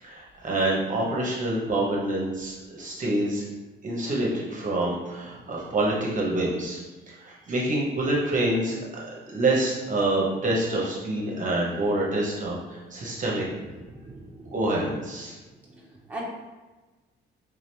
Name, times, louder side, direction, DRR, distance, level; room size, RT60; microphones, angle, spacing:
voice 1, 0.0-3.4 3.8-6.8 7.1-13.4 14.5-15.3, right 1 dB, 40° right, -4 dB, 0.9 m, -27 dB
voice 2, 13.4-14.6 15.6-16.2, right 2 dB, 5° right, -5 dB, 1.0 m, -42 dB
3.5 x 2.7 x 3.3 m, 1.2 s
cardioid pair, 90°, 20 cm